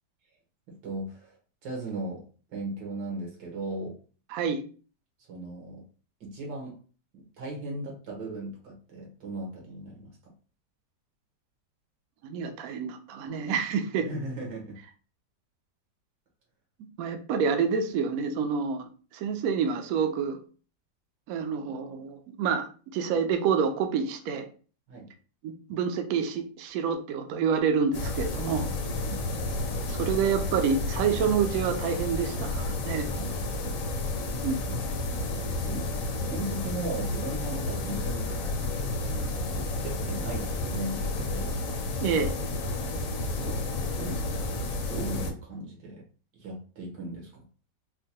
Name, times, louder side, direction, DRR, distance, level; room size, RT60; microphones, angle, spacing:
voice 1, 0.7-1.4 1.6-2.2 2.5-3.9 5.3-5.8 6.2-6.8 7.1-10.3 14.0-14.8 24.9-25.1 29.0-29.2 33.1-33.7 35.6-35.8 36.2-38.3 39.0-41.6 43.4-43.6 44.0-46.0 46.4-47.4, right 2 dB, 90° right, -1 dB, 1.9 m, -37 dB
voice 2, 4.3-4.6 12.2-14.1 17.0-20.4 21.3-24.5 25.4-28.7 29.9-33.1 34.4-34.7 42.0-42.4, right 6 dB, 70° right, 5 dB, 0.8 m, -28 dB
sound 1, 27.9-45.3, left 2 dB, 75° left, 1.3 m, -31 dB
4.5 x 2.2 x 2.7 m, 0.38 s
omnidirectional pair, 1.9 m